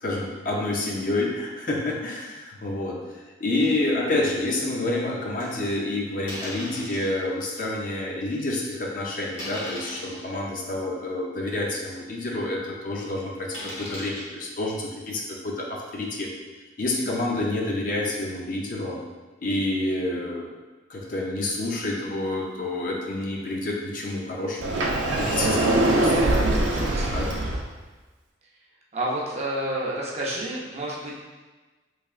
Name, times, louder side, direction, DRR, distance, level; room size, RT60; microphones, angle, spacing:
voice 1, 0.0-3.0 3.4-16.3 16.8-19.0 19.4-20.5 20.9-26.2 26.8-27.3, left 2 dB, 45° left, -2 dB, 0.5 m, -28 dB
sound 1, 3.6-3.8 4.3-4.4 5.4-5.7 6.3-7.1 7.8-7.9 8.4-8.6 9.3-10.3 11.0-11.1 11.5-11.6 11.9-12.0 13.5-14.2, left 1 dB, 90° left, 1.2 m, -37 dB
Sliding door, 24.6-27.6, right 2 dB, 90° right, 0.5 m, -22 dB
voice 2, 26.3-27.4 28.9-31.1, right 1 dB, 35° right, -4 dB, 0.6 m, -30 dB
3.5 x 3.2 x 2.4 m, 1.3 s
head